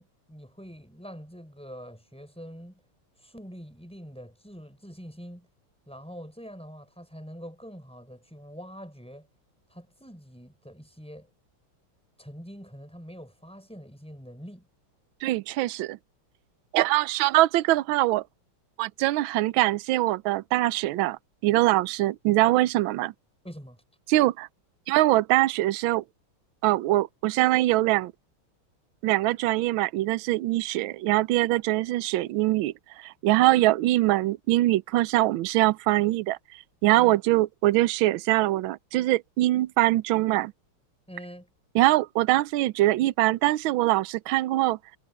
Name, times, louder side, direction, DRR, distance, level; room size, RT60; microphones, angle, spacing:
voice 1, 0.0-2.8 3.2-5.5 5.9-9.3 9.7-11.3 12.2-14.7 23.4-23.8 36.9-37.2 41.1-41.5, equal, ahead, 5.6 m, -44 dB
voice 2, 15.2-16.0 16.7-18.2 18.8-23.1 24.1-24.5 24.9-26.0 26.6-28.1 29.0-36.4 36.8-40.5 41.7-44.8, right 17 dB, 75° right, 1.3 m, -23 dB
omnidirectional pair, 2.4 m